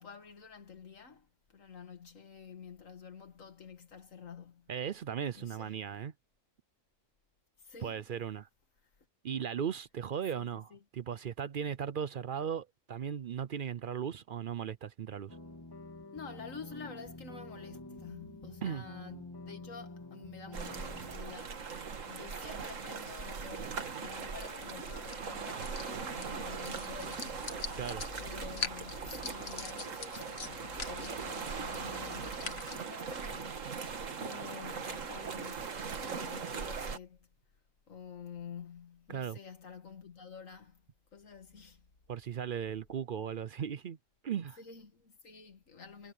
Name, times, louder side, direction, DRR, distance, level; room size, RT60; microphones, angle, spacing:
voice 1, 0.0-4.7 5.4-5.9 7.6-8.0 8.8-8.9 10.4-10.8 16.1-27.6 28.2-33.8 34.2-37.3 37.9-40.8 41.1-41.9 44.6-46.1, left 6 dB, 80° left, 2.1 m, -50 dB
voice 2, 4.7-6.1 7.8-8.5 9.2-15.4 18.6-18.8 27.8-28.0 39.1-39.4 42.1-44.0 44.2-44.6, right 8 dB, 55° right, 0.6 m, -37 dB
sound 1, 15.3-21.2, left 2 dB, 15° left, 2.7 m, -48 dB
sound 2, 20.5-37.0, right 5 dB, 75° right, 1.9 m, -40 dB
sound 3, 24.1-32.8, left 5 dB, 55° left, 1.7 m, -44 dB
omnidirectional pair, 1.3 m